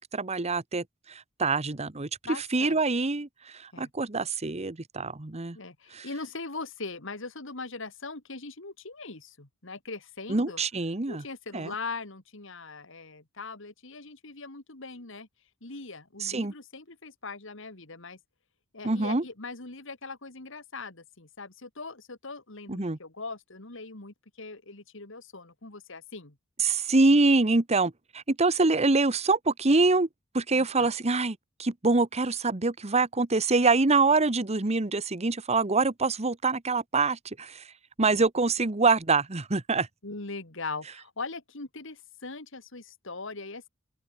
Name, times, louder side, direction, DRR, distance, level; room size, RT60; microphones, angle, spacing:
voice 1, 0.1-2.1 2.4-5.6 5.9-6.1 10.3-11.2 11.5-11.7 16.2-16.5 18.8-19.2 22.7-23.0 26.6-30.1 30.3-37.6 38.0-39.9, right 3 dB, 35° right, 1.2 m, -25 dB
voice 2, 2.3-2.8 3.7-3.9 5.5-10.6 11.1-15.3 15.6-18.2 18.7-26.4 30.5-30.9 38.0-38.3 40.0-43.7, left 3 dB, 70° left, 2.7 m, -40 dB
open air
head